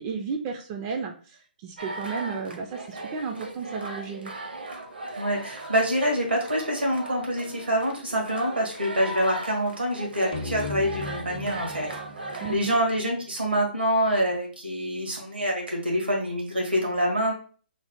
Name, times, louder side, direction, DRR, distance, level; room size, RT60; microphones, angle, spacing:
voice 1, 0.0-4.3 12.4-12.8, right 5 dB, 25° right, 3 dB, 0.3 m, -33 dB
sound 1, 1.8-12.5, right 1 dB, 70° right, 0.8 m, -38 dB
voice 2, 5.2-11.9 12.5-17.3, equal, 90° right, 0 dB, 1.3 m, -26 dB
sound 2, 10.3-13.8, left 2 dB, 55° left, 0.6 m, -38 dB
3.1 x 2.1 x 2.9 m, 0.42 s
figure-of-eight pair, 135°, 5 cm